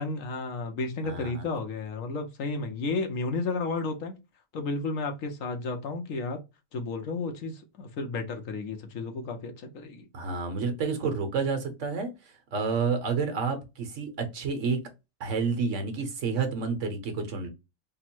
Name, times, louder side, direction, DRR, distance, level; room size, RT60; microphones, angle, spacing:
voice 1, 0.0-4.2 4.5-6.4 6.7-10.1, left 3 dB, 75° left, 1.2 m, -32 dB
voice 2, 1.0-1.4 10.1-14.8 15.2-17.5, right 5 dB, 65° right, 1.2 m, -30 dB
3.6 x 2.0 x 4.3 m
omnidirectional pair, 1.4 m